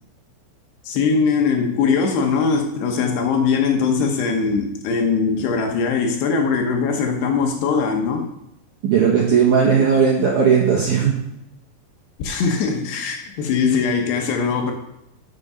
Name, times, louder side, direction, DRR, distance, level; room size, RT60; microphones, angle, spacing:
voice 1, 0.9-8.3 12.2-14.7, left 5 dB, 70° left, 3 dB, 2.9 m, -21 dB
voice 2, 8.8-11.2, right 6 dB, 65° right, -3 dB, 2.0 m, -16 dB
11.5 x 7.3 x 5.5 m, 0.83 s
omnidirectional pair, 5.4 m